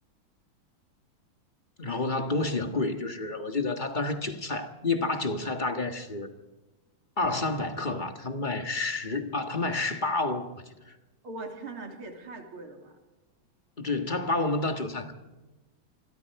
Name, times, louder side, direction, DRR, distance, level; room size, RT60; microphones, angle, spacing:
voice 1, 1.8-6.3 7.2-10.9 13.8-15.1, left 3 dB, 25° left, 1.5 m, -29 dB
voice 2, 11.2-13.0, right 3 dB, 85° right, 3.9 m, -41 dB
27.0 x 22.0 x 4.8 m
omnidirectional pair, 2.3 m